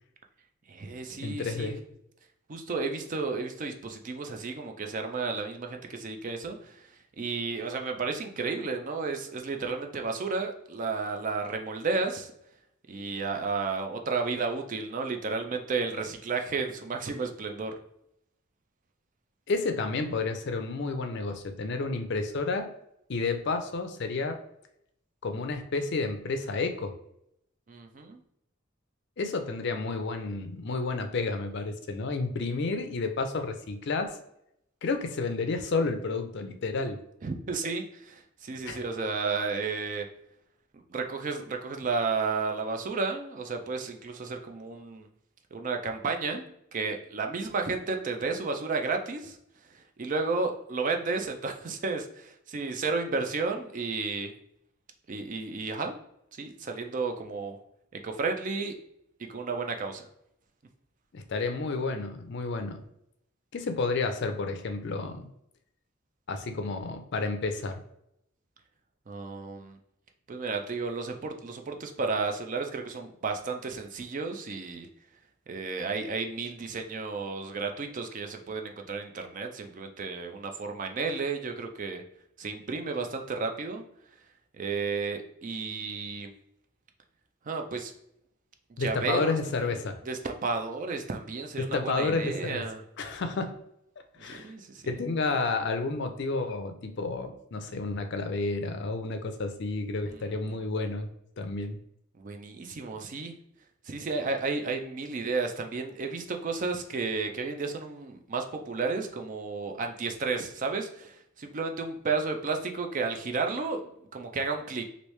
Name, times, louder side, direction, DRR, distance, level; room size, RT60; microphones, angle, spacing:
voice 1, 0.7-1.8 2.5-6.9 7.2-12.3 12.9-17.7 27.7-28.2 37.2-40.1 40.7-45.1 45.5-49.4 49.7-54.3 55.1-56.0 56.3-57.6 57.9-58.7 59.3-60.1 69.1-69.8 70.3-74.9 75.5-82.0 82.4-83.8 84.5-86.3 87.5-87.9 88.7-89.7 90.1-92.8 94.2-95.0 100.1-100.3 102.2-103.3 103.9-114.8, right 4 dB, 40° right, 4 dB, 0.4 m, -32 dB
voice 2, 1.2-1.8 19.5-22.7 23.1-24.4 25.2-26.9 29.2-34.2 34.8-37.0 38.7-38.8 61.1-62.8 63.5-65.3 66.3-67.8 88.8-90.0 91.6-92.6 93.0-93.5 94.2-94.5 94.9-101.1 101.4-101.8, left 3 dB, 55° left, 6 dB, 0.4 m, -31 dB
3.1 x 2.6 x 3.1 m, 0.77 s
head